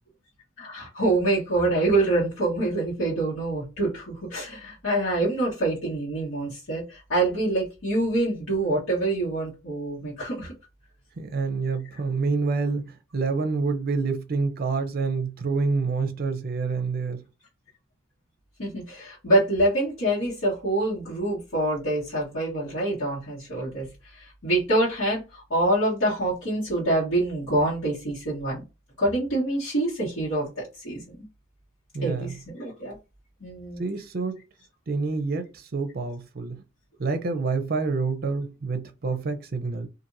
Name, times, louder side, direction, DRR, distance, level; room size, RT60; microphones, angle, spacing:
voice 1, 0.6-10.5 18.6-23.9 24.1-28.6 29.0-31.3 32.0-32.9 33.4-33.8, right 2 dB, 70° left, 1.4 m, -26 dB
voice 2, 11.2-17.2 31.9-32.4 33.8-34.4 34.9-36.6 37.0-39.9, right 4 dB, 45° right, 0.6 m, -27 dB
2.8 x 2.6 x 2.6 m
head